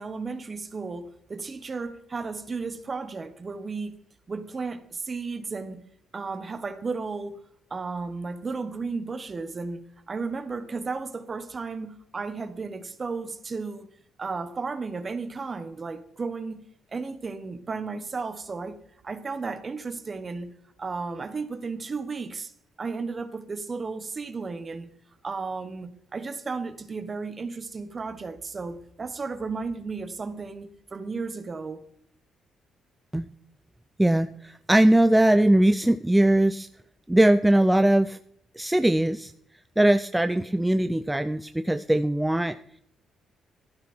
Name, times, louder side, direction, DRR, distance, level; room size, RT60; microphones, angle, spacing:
voice 1, 0.0-4.0 4.3-5.8 6.1-7.4 7.7-13.9 14.2-16.6 16.9-20.5 20.8-22.5 22.8-24.9 25.2-31.8, right 4 dB, 35° right, 1.4 m, -34 dB
voice 2, 34.0-36.7 37.1-38.2 38.6-39.3 39.8-42.6, right 1 dB, 10° right, 0.5 m, -20 dB
12.5 x 11.5 x 4.4 m
cardioid pair, 90°, 0 cm